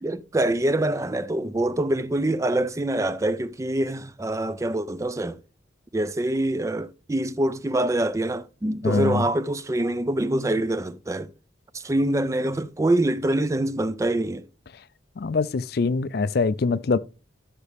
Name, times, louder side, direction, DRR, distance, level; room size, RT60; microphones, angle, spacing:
voice 1, 0.0-5.4 5.9-11.3 11.7-14.5, right 1 dB, 15° right, 0.3 m, -25 dB
voice 2, 8.8-9.2 15.2-17.0, left 4 dB, 55° left, 0.4 m, -23 dB
12.5 x 5.9 x 3.4 m
head